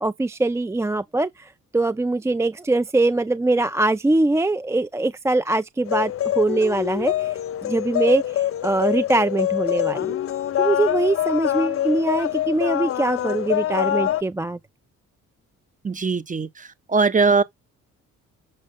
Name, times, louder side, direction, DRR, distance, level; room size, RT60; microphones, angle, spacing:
voice 1, 0.0-10.2 10.6-14.6, right 2 dB, 10° right, 0.4 m, -22 dB
sound 1, 5.9-14.2, left 12 dB, 45° left, 0.6 m, -25 dB
voice 2, 15.8-17.4, right 4 dB, 25° right, 1.0 m, -21 dB
6.7 x 4.9 x 3.6 m
cardioid pair, 90°, 30 cm